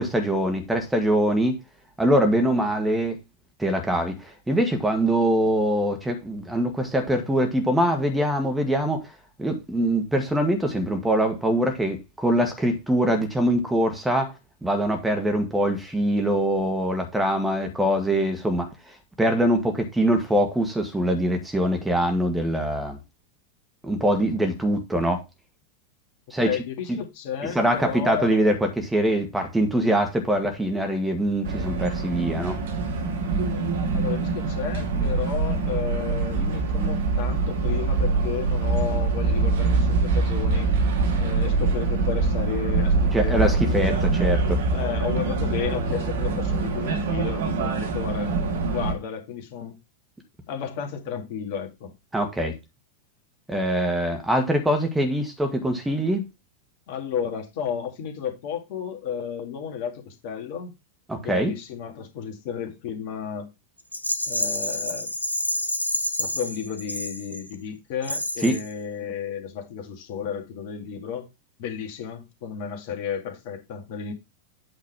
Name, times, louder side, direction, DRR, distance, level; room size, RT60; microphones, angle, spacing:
voice 1, 0.0-1.6 2.0-3.2 3.6-9.1 9.4-14.3 14.6-18.7 19.2-23.0 23.8-25.2 26.3-26.5 26.9-27.0 27.6-32.6 43.1-44.6 52.1-52.6 53.5-56.2 61.1-61.5 68.4-68.6, right 1 dB, 5° right, 1.7 m, -23 dB
voice 2, 26.4-28.3 33.9-40.7 41.2-43.9 44.2-44.3 44.7-48.3 48.7-49.8 50.5-51.9 56.9-60.7 61.2-63.5 64.3-65.1 66.2-71.3 71.6-74.1, left 7 dB, 50° left, 2.0 m, -33 dB
sound 1, 31.5-48.9, right 3 dB, 55° right, 1.7 m, -24 dB
Rattle, 63.9-67.5 68.0-68.7, left 1 dB, 85° left, 1.0 m, -28 dB
8.7 x 3.9 x 4.8 m
figure-of-eight pair, 90°, 0 cm